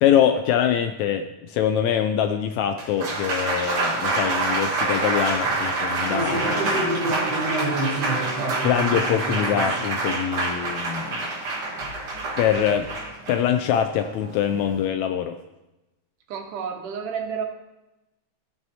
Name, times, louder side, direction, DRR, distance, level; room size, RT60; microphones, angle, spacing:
voice 1, 0.0-7.2 8.6-11.3 12.4-12.9 13.3-15.4, left 9 dB, 80° left, 7 dB, 1.7 m, -24 dB
Applause, 2.6-14.9, right 2 dB, 50° right, 1.2 m, -26 dB
voice 2, 16.3-17.5, right 6 dB, 90° right, 3 dB, 2.6 m, -30 dB
15.0 x 6.2 x 2.7 m, 0.99 s
omnidirectional pair, 3.6 m